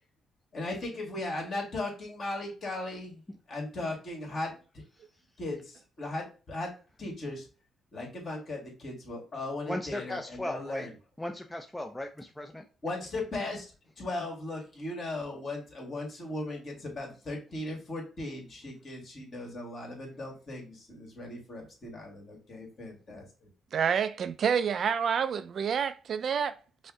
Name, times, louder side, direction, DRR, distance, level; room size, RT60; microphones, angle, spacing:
voice 1, 0.5-3.2 3.5-4.8 5.4-6.7 7.0-7.5 7.9-10.9 12.8-13.7 14.0-23.5, left 2 dB, 45° left, 1.9 m, -37 dB
voice 2, 9.7-10.9 11.2-12.6, left 1 dB, 10° left, 0.4 m, -36 dB
voice 3, 23.7-26.6, right 7 dB, 55° right, 0.3 m, -28 dB
5.2 x 2.1 x 3.6 m
cardioid pair, 90°, 0 cm